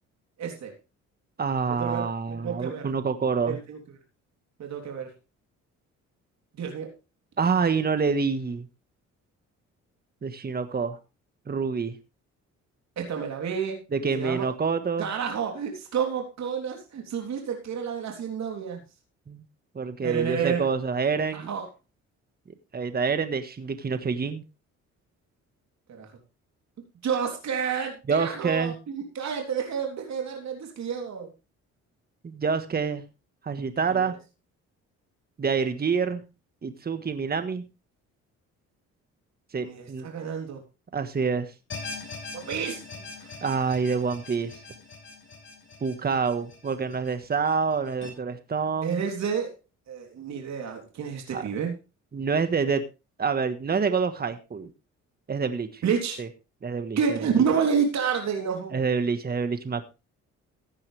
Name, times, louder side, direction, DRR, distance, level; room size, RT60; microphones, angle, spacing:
voice 1, 0.4-0.7 1.8-2.0 2.3-2.9 3.5-3.8 4.6-5.1 6.6-6.9 13.0-13.8 14.2-14.5 15.0-18.8 20.0-20.6 21.3-21.7 25.9-26.1 27.0-31.3 33.9-34.1 39.6-40.6 42.3-43.3 48.8-49.5 49.9-51.7 55.8-56.2 57.0-58.8, right 6 dB, 65° right, 2 dB, 3.4 m, -29 dB
voice 2, 1.4-3.6 7.4-8.7 10.2-11.0 11.5-12.0 13.9-15.1 19.3-19.4 19.7-21.5 22.7-24.4 28.1-28.7 32.2-33.0 33.4-34.2 35.4-36.2 36.6-37.6 39.5-40.1 40.9-41.5 43.4-44.6 45.8-49.0 51.3-51.5 52.1-52.8 53.2-54.7 55.3-55.8 56.2-56.3 56.6-57.2 58.7-59.8, right 5 dB, 30° right, 9 dB, 1.5 m, -27 dB
sound 1, 41.7-48.1, left 4 dB, 40° left, 5.6 m, -42 dB
15.5 x 9.9 x 3.4 m, 0.29 s
cardioid pair, 90°, 30 cm